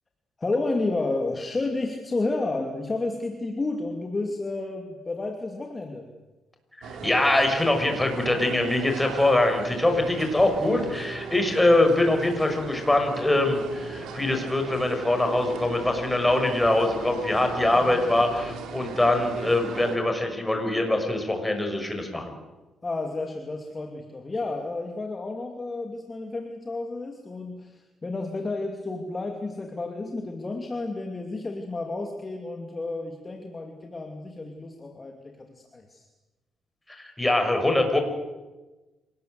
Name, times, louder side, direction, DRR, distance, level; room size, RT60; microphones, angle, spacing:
voice 1, 0.4-6.1 22.8-36.1, left 2 dB, 25° left, 3 dB, 2.7 m, -31 dB
sound 1, 6.8-20.0, right 5 dB, 80° right, 3.8 m, -38 dB
voice 2, 7.0-22.3 36.9-38.0, left 1 dB, 10° left, 5 dB, 5.7 m, -23 dB
27.0 x 19.5 x 8.0 m, 1.1 s
cardioid pair, 90°, 0 cm